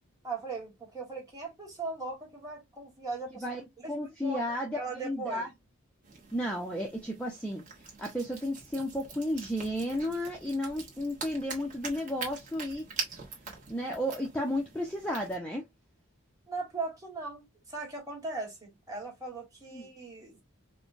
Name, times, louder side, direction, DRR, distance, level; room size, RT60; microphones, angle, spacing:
voice 1, 0.2-3.4 3.8-4.4 4.7-5.4 16.5-20.4, right 3 dB, 15° right, 1.6 m, -39 dB
voice 2, 3.9-5.5 6.3-7.6 8.0-12.9 13.7-15.7 19.7-19.8, equal, 5° left, 0.6 m, -33 dB
sound 1, 6.0-15.4, right 5 dB, 35° right, 1.2 m, -44 dB
4.8 x 2.2 x 2.6 m
head